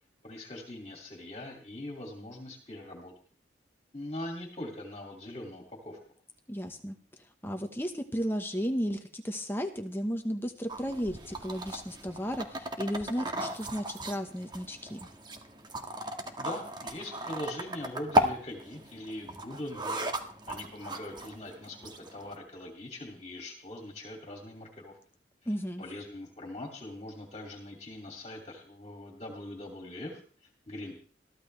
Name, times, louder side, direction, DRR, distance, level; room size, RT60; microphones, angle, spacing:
voice 1, 0.2-3.1 3.9-6.0 16.4-20.0 20.5-25.0 25.8-31.0, left 1 dB, 35° left, 1 dB, 2.6 m, -42 dB
voice 2, 6.5-15.1 25.4-25.8, equal, 10° left, 5 dB, 1.1 m, -34 dB
sound 1, 10.7-22.4, right 1 dB, 25° right, 1.6 m, -35 dB
22.0 x 14.5 x 3.3 m, 0.43 s
head